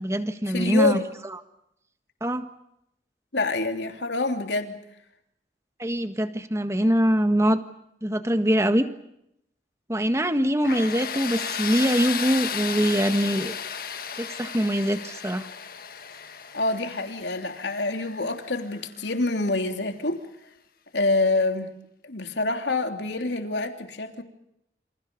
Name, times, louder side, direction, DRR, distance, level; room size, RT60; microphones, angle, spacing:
voice 1, 0.0-1.4 2.2-2.5 5.8-7.6 8.0-8.8 9.9-13.5 14.2-15.5, equal, 15° right, 8 dB, 1.6 m, -23 dB
voice 2, 0.5-1.1 3.3-4.8 16.5-20.2 20.9-21.7 22.0-24.2, left 2 dB, 80° left, 5 dB, 3.1 m, -26 dB
Tools, 10.6-19.4, left 7 dB, 55° left, 1.6 m, -34 dB
28.5 x 28.0 x 5.4 m, 0.79 s
head